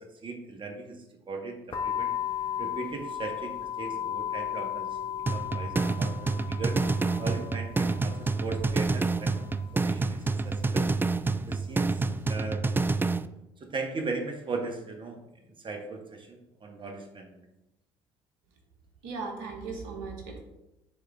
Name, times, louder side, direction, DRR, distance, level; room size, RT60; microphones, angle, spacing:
voice 1, 0.2-2.1 2.6-6.8 7.2-9.4 9.7-10.2 10.4-10.9 11.4-11.9 12.3-12.6 13.6-15.2 15.6-17.5, right 3 dB, 35° right, 4 dB, 1.3 m, -38 dB
sound 1, 1.7-12.3, left 9 dB, 40° left, 1.5 m, -37 dB
sound 2, 5.3-13.3, right 3 dB, 15° right, 0.4 m, -28 dB
voice 2, 19.0-20.4, right 4 dB, 75° right, 3 dB, 1.3 m, -37 dB
10.0 x 3.8 x 3.5 m, 0.92 s
hypercardioid pair, 55°, 14 cm